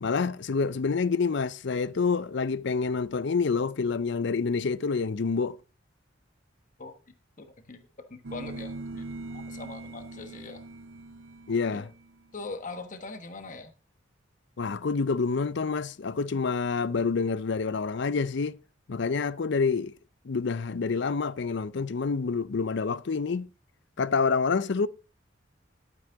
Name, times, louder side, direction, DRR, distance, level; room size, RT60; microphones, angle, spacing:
voice 1, 0.0-5.6 11.5-11.9 14.6-18.6 18.9-19.9 20.2-23.5 24.0-24.9, left 4 dB, 65° left, 0.5 m, -27 dB
voice 2, 7.4-7.8 8.3-10.6 11.7-11.8 12.3-13.7, left 3 dB, 45° left, 1.3 m, -41 dB
sound 1, 8.2-12.3, right 2 dB, 90° right, 0.7 m, -41 dB
12.0 x 9.1 x 3.8 m
head